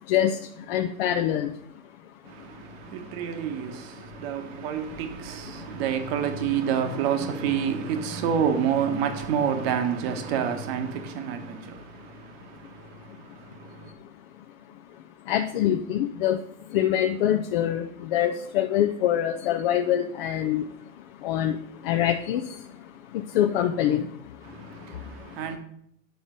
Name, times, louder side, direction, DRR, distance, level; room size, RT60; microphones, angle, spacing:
voice 1, 0.1-1.5 5.5-5.7 15.3-20.7 21.2-25.4, left 11 dB, 45° left, 0.5 m, -26 dB
voice 2, 2.3-13.9 24.4-25.6, right 7 dB, 45° right, 1.2 m, -29 dB
8.0 x 3.9 x 5.1 m
hypercardioid pair, 115°, 42 cm